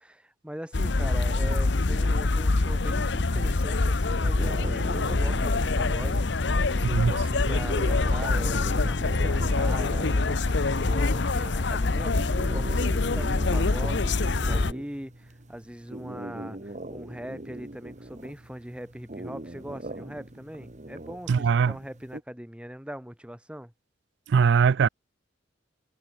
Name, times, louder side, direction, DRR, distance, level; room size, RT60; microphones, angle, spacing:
voice 1, 0.0-6.5 6.8-23.7, equal, 5° right, 4.5 m, -41 dB
sound 1, 0.7-14.7, left 3 dB, 70° left, 0.9 m, -25 dB
sound 2, 4.2-22.2, right 1 dB, 40° right, 1.8 m, -41 dB
voice 2, 6.8-7.1 7.4-7.5 21.3-21.7 24.3-24.9, right 6 dB, 65° right, 0.4 m, -21 dB
head